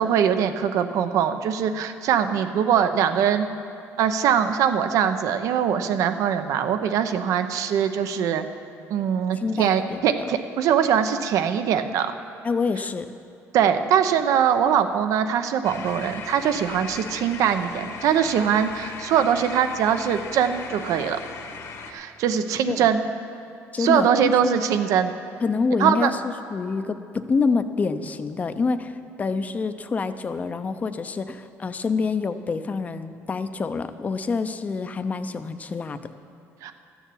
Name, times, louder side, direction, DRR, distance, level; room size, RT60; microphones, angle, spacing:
voice 1, 0.0-3.5 4.0-8.5 8.9-12.1 13.5-21.2 21.9-23.0 23.8-25.1 25.8-26.1 36.6-36.7, right 8 dB, 75° right, 9 dB, 0.8 m, -22 dB
voice 2, 9.3-10.3 12.4-13.1 22.7-22.9 23.7-24.6 25.4-36.0, left 4 dB, 25° left, 10 dB, 0.6 m, -27 dB
sound 1, 15.6-21.9, left 5 dB, 55° left, 1.2 m, -38 dB
13.5 x 7.2 x 8.5 m, 2.6 s
cardioid pair, 130°, 6 cm